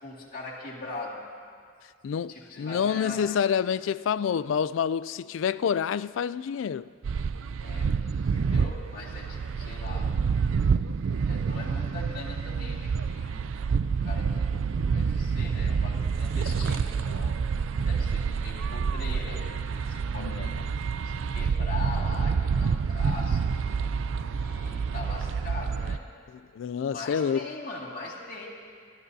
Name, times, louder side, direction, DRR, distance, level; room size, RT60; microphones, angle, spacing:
voice 1, 0.0-1.3 2.3-3.3 7.6-7.9 8.3-10.1 11.1-13.6 14.0-17.4 17.8-20.6 21.0-23.5 24.3-26.0 26.9-28.5, left 3 dB, 45° left, 2.2 m, -41 dB
voice 2, 2.0-6.9 20.2-20.5 26.3-27.5, left 7 dB, 75° left, 0.3 m, -28 dB
sound 1, 7.0-26.0, right 5 dB, 90° right, 0.4 m, -28 dB
27.5 x 12.5 x 2.7 m
head